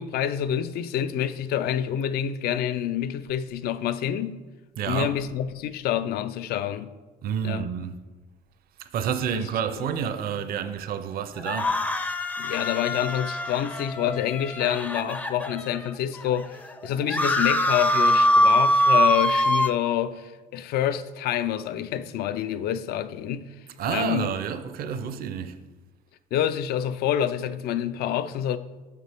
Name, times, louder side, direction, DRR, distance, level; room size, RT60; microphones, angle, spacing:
voice 1, 0.0-4.4 4.9-6.9 7.4-7.7 9.3-9.4 12.4-23.5 23.9-24.3 26.3-28.6, left 10 dB, 70° left, 0.4 m, -27 dB
voice 2, 4.8-5.2 7.2-8.0 8.8-11.8 23.8-25.6, right 8 dB, 60° right, 0.5 m, -29 dB
sound 1, 11.4-15.9 16.4-16.5 16.6-19.7, equal, 10° left, 0.4 m, -23 dB
6.6 x 6.6 x 3.4 m
cardioid pair, 110°, 17 cm